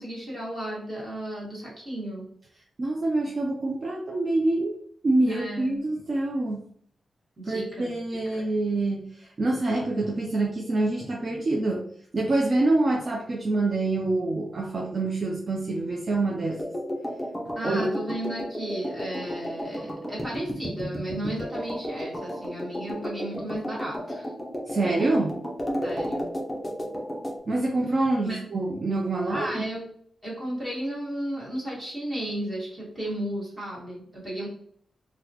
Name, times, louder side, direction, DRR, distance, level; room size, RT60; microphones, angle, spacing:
voice 1, 0.0-2.3 5.3-5.7 7.4-7.9 8.3-8.4 17.5-24.3 25.8-26.3 28.2-28.4 29.3-29.8 30.2-34.5, right 1 dB, 15° right, -6 dB, 1.4 m, -34 dB
voice 2, 2.8-4.7 5.0-6.6 7.5-11.9 12.1-16.6 17.6-17.9 24.7-25.4 27.5-29.7, right 2 dB, 35° right, 0 dB, 0.4 m, -26 dB
sound 1, 16.6-27.4, equal, 10° left, 0.6 m, -33 dB
4.0 x 2.2 x 2.7 m, 0.63 s
wide cardioid pair, 175°, 0 cm